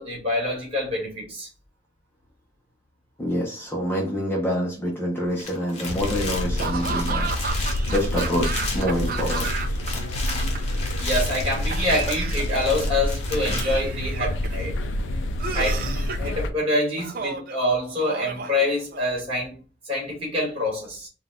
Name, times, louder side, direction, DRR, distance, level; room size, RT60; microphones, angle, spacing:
voice 1, 0.0-1.5 11.0-14.8 15.5-15.8 16.2-19.5 19.9-21.1, left 1 dB, 30° right, 1.9 m, -26 dB
voice 2, 3.2-7.3 7.9-9.5, equal, 10° left, 0.7 m, -26 dB
sound 1, 5.3-13.6, left 3 dB, 35° left, 0.9 m, -35 dB
sound 2, 5.9-16.5, left 1 dB, 80° left, 0.5 m, -28 dB
Laughter / Cough, 6.6-9.9 10.2-11.0 11.7-12.8 13.4-14.6 15.4-16.3 17.0-17.6 18.0-19.2, right 5 dB, 50° right, 0.4 m, -32 dB
3.8 x 2.3 x 3.7 m
head